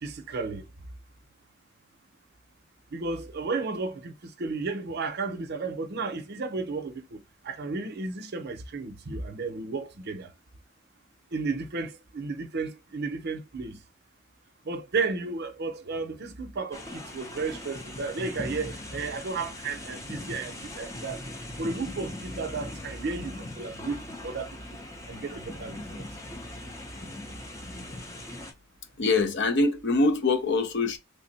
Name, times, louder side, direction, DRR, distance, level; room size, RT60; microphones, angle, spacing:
voice 1, 0.0-0.7 2.9-7.2 7.4-10.3 11.3-13.8 14.7-21.2 21.6-24.6 25.1-26.0, right 4 dB, 55° right, 0.6 m, -33 dB
sound 1, 16.7-28.5, left 1 dB, 15° left, 0.6 m, -40 dB
voice 2, 29.0-31.0, left 3 dB, 60° left, 0.6 m, -24 dB
3.4 x 2.0 x 4.0 m
head